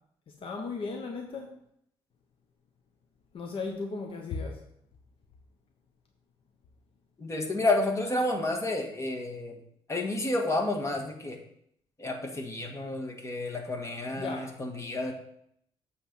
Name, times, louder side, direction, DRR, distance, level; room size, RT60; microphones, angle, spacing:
voice 1, 0.4-1.5 3.3-4.6 14.2-14.5, left 4 dB, 55° left, 2 dB, 1.0 m, -35 dB
voice 2, 7.2-9.6 9.9-11.4 12.0-15.1, left 2 dB, 30° left, 2 dB, 1.7 m, -30 dB
7.9 x 3.5 x 6.1 m, 0.72 s
supercardioid pair, 75°, 11 cm